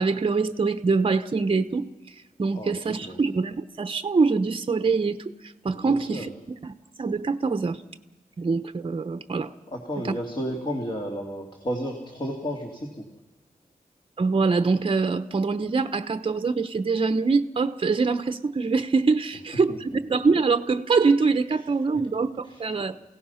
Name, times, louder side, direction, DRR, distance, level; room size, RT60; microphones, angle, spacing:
voice 1, 0.0-1.8 2.4-5.2 5.6-6.3 6.6-6.7 7.0-7.8 8.4-9.5 10.0-10.1 14.2-23.0, right 4 dB, 35° right, 10 dB, 0.9 m, -24 dB
voice 2, 2.5-3.2 5.7-6.3 9.7-13.0 19.7-19.8 22.4-22.6, equal, 35° left, 1 dB, 2.7 m, -32 dB
29.0 x 17.0 x 5.7 m, 1.0 s
wide cardioid pair, 115°, 15 cm